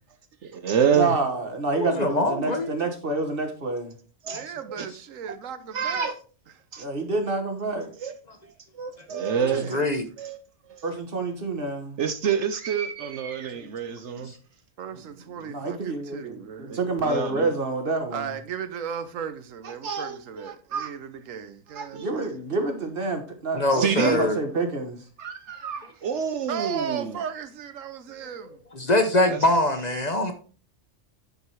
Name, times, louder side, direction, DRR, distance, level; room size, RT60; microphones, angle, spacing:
voice 1, 0.4-1.1 4.2-4.5 4.8-4.9 5.7-6.1 6.7-6.9 8.0-8.1 8.7-9.7 10.2-10.4 10.7-10.8 12.0-14.3 16.7-17.5 19.6-20.9 21.7-22.1 23.7-24.3 25.2-27.2 29.3-29.4, right 7 dB, 65° right, 1.0 m, -28 dB
voice 2, 0.9-4.0 6.8-7.9 10.8-12.0 15.4-18.3 21.9-25.0, right 3 dB, 45° right, 1.6 m, -28 dB
voice 3, 1.7-2.7 4.3-4.4 4.8-4.9 9.5-10.0 13.6-13.7 14.1-14.4 23.5-24.4 28.7-30.3, left 2 dB, 35° left, 0.9 m, -24 dB
voice 4, 4.3-6.1 9.4-9.9 14.8-16.9 18.1-22.4 26.5-28.6, right 7 dB, 85° right, 1.2 m, -36 dB
9.5 x 4.8 x 4.5 m
omnidirectional pair, 1.3 m